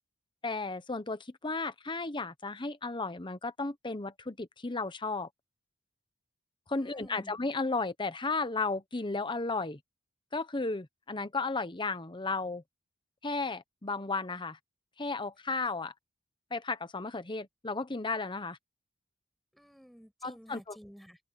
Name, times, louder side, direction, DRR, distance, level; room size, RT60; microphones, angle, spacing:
voice 1, 0.4-5.3 6.7-9.8 10.3-12.6 13.2-14.6 15.0-15.9 16.5-18.6 20.2-20.8, left 3 dB, 25° left, 1.0 m, -34 dB
voice 2, 6.7-7.4 19.5-21.2, equal, ahead, 7.8 m, -53 dB
open air
head